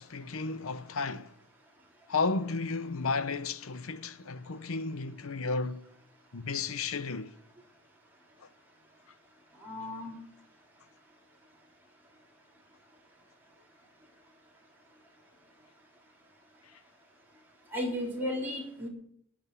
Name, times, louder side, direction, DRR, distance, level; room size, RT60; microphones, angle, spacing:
voice 1, 0.0-1.3 2.1-5.8 6.3-7.3, left 4 dB, 80° left, 0.8 m, -33 dB
voice 2, 9.6-10.1 17.7-18.9, left 1 dB, 10° right, 3.7 m, -34 dB
18.0 x 6.3 x 9.3 m
head